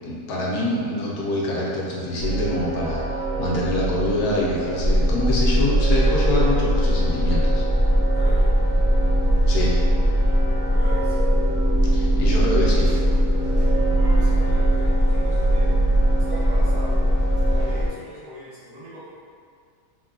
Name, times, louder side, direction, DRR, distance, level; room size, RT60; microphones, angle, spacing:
voice 1, 0.0-7.6 9.5-9.7 11.9-12.9, left 1 dB, 75° left, -5 dB, 1.0 m, -25 dB
sound 1, 2.2-17.8, right 3 dB, 85° right, 1.2 m, -28 dB
sound 2, 4.8-17.9, equal, 40° right, 0.7 m, -20 dB
voice 2, 8.1-8.5 10.7-11.2 14.0-15.8 16.3-17.0 17.5-19.2, right 1 dB, 60° right, -11 dB, 1.3 m, -39 dB
3.0 x 2.2 x 2.3 m, 2.1 s
omnidirectional pair, 1.6 m